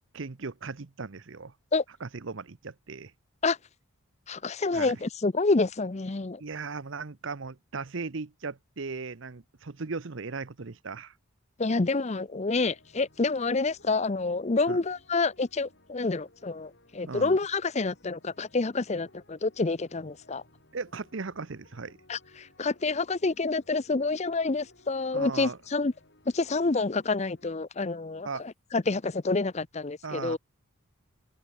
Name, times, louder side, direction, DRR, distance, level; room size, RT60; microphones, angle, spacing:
voice 1, 0.1-1.5 2.0-3.1 4.7-5.0 6.4-11.1 14.7-14.8 17.1-17.4 20.7-22.0 25.1-25.6 28.2-28.4 30.0-30.4, right 4 dB, 60° right, 0.8 m, -37 dB
voice 2, 4.3-6.4 11.6-20.4 22.1-25.9 26.3-28.3 28.7-30.4, left 3 dB, 30° left, 0.6 m, -28 dB
sound 1, 12.5-27.5, left 1 dB, 50° left, 5.1 m, -60 dB
open air
head